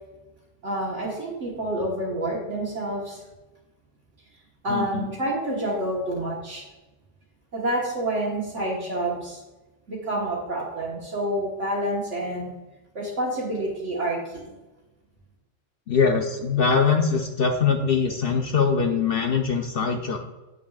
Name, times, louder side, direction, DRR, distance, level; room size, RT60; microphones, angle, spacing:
voice 1, 0.6-3.2 4.6-6.6 7.5-9.4 9.9-12.5 12.9-14.5, right 1 dB, 70° right, -5 dB, 1.7 m, -28 dB
voice 2, 4.7-5.1 15.9-20.2, left 5 dB, 55° left, 4 dB, 0.7 m, -22 dB
8.7 x 6.3 x 2.4 m, 1.1 s
omnidirectional pair, 1.3 m